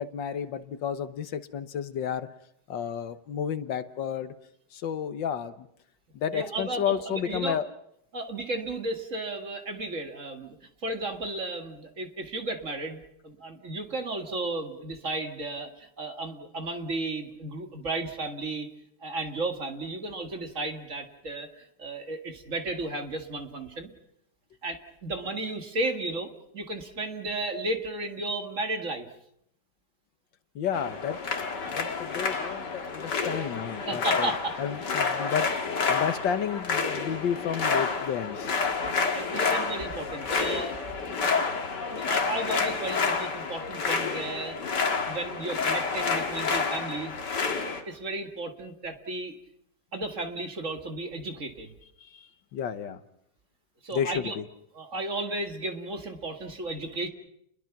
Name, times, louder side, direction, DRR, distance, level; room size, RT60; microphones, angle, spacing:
voice 1, 0.0-2.3 2.7-4.3 4.7-5.7 6.1-7.7 30.6-31.2 31.7-34.3 34.6-38.5 52.0-53.0 53.9-54.5, left 8 dB, 85° left, 11 dB, 1.8 m, -32 dB
voice 2, 6.3-7.6 8.1-10.6 10.8-18.7 19.0-23.9 24.6-29.1 33.9-34.6 38.8-41.0 41.9-44.6 45.1-47.1 47.5-49.4 49.9-51.7 53.8-54.4 54.7-57.1, right 2 dB, 45° right, 5 dB, 2.3 m, -34 dB
sound 1, 30.7-47.8, left 4 dB, 70° left, 2.7 m, -29 dB
30.0 x 21.5 x 6.0 m, 0.76 s
omnidirectional pair, 2.0 m